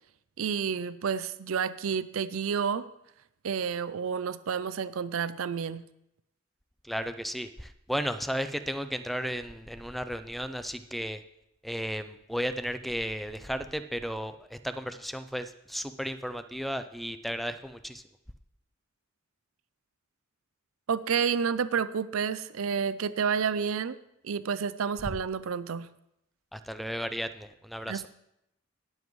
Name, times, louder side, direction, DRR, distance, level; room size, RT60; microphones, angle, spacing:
voice 1, 0.4-2.9 3.4-5.8 20.9-24.0 24.2-25.9 27.9-28.1, right 6 dB, 85° right, 15 dB, 0.5 m, -30 dB
voice 2, 6.8-11.2 11.6-18.0 25.0-25.1 26.5-28.0, equal, ahead, 11 dB, 0.4 m, -34 dB
19.0 x 7.3 x 3.1 m, 0.81 s
head